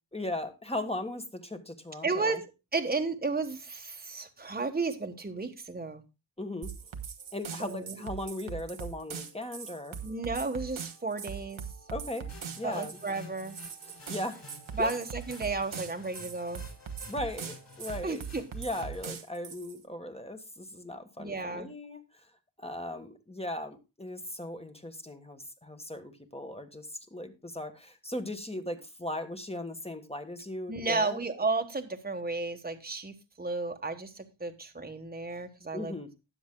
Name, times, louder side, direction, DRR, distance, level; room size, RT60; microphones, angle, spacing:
voice 1, 0.1-2.4 6.4-6.7 7.3-10.0 11.9-12.3 12.6-13.0 13.9-14.4 14.8-14.9 17.1-18.2 18.5-22.3 22.6-31.2 35.7-36.1, left 1 dB, 15° left, 6 dB, 1.4 m, -38 dB
voice 2, 2.0-2.4 2.7-6.0 7.6-8.1 10.0-11.6 12.6-13.6 14.8-16.6 18.0-18.4 21.2-21.7 30.7-35.9, right 3 dB, 20° right, 5 dB, 1.3 m, -33 dB
sound 1, 6.6-19.8, right 7 dB, 80° right, 1.3 m, -41 dB
sound 2, 7.2-18.0, right 1 dB, 80° left, 4.9 m, -60 dB
sound 3, 12.3-19.1, left 3 dB, 45° left, 3.9 m, -51 dB
19.5 x 7.2 x 2.2 m, 0.27 s
wide cardioid pair, 80°, 47 cm